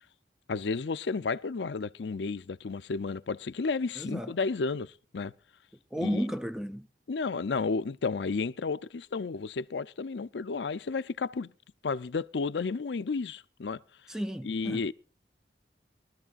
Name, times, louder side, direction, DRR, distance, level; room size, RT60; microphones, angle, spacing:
voice 1, 0.5-5.3 6.0-6.2 7.1-11.5 11.8-13.8 14.4-14.9, left 4 dB, 85° left, 0.5 m, -32 dB
voice 2, 4.0-4.3 5.9-6.9 14.1-14.9, equal, 5° right, 0.5 m, -33 dB
22.5 x 13.0 x 2.4 m
head